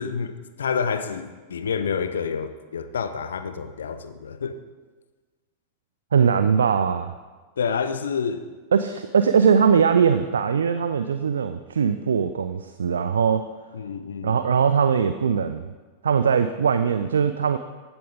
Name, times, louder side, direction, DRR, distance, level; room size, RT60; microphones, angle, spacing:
voice 1, 0.0-4.6 7.6-8.5 13.7-14.4, left 6 dB, 65° left, 10 dB, 0.6 m, -28 dB
voice 2, 6.1-7.1 8.7-13.5 14.2-15.7 16.0-17.6, right 6 dB, 70° right, 11 dB, 0.4 m, -21 dB
15.0 x 7.0 x 3.6 m, 1.3 s
figure-of-eight pair, 90°, 0 cm